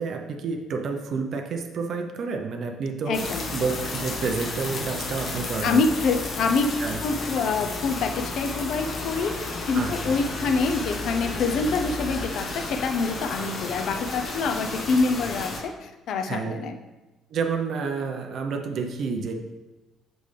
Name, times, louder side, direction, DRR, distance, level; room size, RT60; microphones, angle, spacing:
voice 1, 0.0-3.2 3.5-5.9 6.8-7.0 9.7-9.9 10.3-10.4 16.2-16.6 17.3-19.3, right 5 dB, 50° right, 3 dB, 0.6 m, -29 dB
voice 2, 3.1-3.4 5.6-16.7, left 4 dB, 60° left, 7 dB, 0.6 m, -26 dB
sound 1, 3.1-15.6, left 3 dB, 35° left, 1.2 m, -32 dB
7.6 x 5.1 x 3.3 m, 1.1 s
cardioid pair, 145°, 0 cm